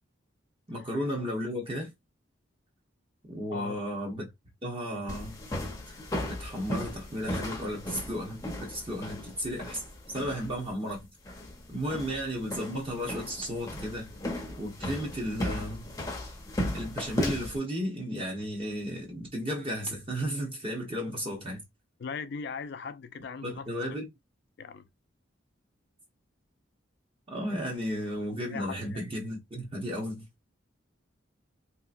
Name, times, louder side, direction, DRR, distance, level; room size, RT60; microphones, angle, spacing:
voice 1, 0.7-1.9 3.3-4.3 4.6-5.4 6.3-9.8 10.1-11.1 11.7-14.1 14.6-15.9 16.7-21.6 23.4-24.1 27.3-30.3, equal, 30° right, 0.9 m, -34 dB
sound 1, 5.1-17.6, left 1 dB, 15° left, 0.7 m, -36 dB
voice 2, 22.0-23.7 24.6-24.9 28.5-29.0, left 5 dB, 55° left, 0.3 m, -38 dB
3.2 x 2.8 x 2.5 m
head